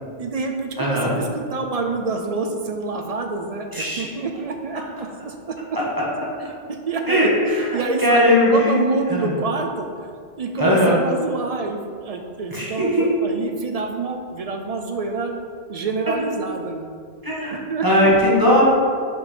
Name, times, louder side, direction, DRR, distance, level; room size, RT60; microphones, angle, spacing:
voice 1, 0.2-5.6 6.7-7.3 7.7-10.1 10.4-15.4 15.7-16.9 17.5-18.4, right 3 dB, 45° right, 4 dB, 0.5 m, -27 dB
voice 2, 0.8-1.1 3.7-4.1 7.1-8.7 9.1-9.3 10.6-11.0 12.5-13.0 17.2-17.5 17.8-18.6, left 1 dB, 20° right, -6 dB, 1.4 m, -18 dB
5.7 x 5.4 x 4.3 m, 2.2 s
omnidirectional pair, 1.1 m